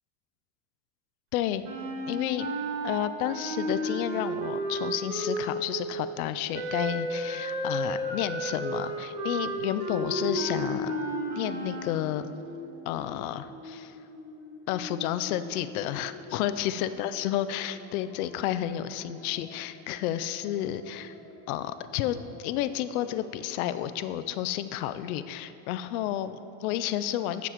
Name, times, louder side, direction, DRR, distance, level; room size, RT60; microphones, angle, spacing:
voice 1, 1.3-1.6 2.1-2.5 2.8-10.9 11.4-12.3 12.9-13.9 14.7-21.1 21.5-27.5, left 12 dB, 75° left, 13 dB, 0.5 m, -31 dB
Wind instrument woodwind instrument, 1.6-5.8 6.5-11.9, right 1 dB, 50° right, 1.8 m, -33 dB
sound 1, 9.7-23.9, left 2 dB, 35° left, 1.0 m, -43 dB
14.0 x 7.0 x 3.0 m, 2.9 s
supercardioid pair, 150°, 44 cm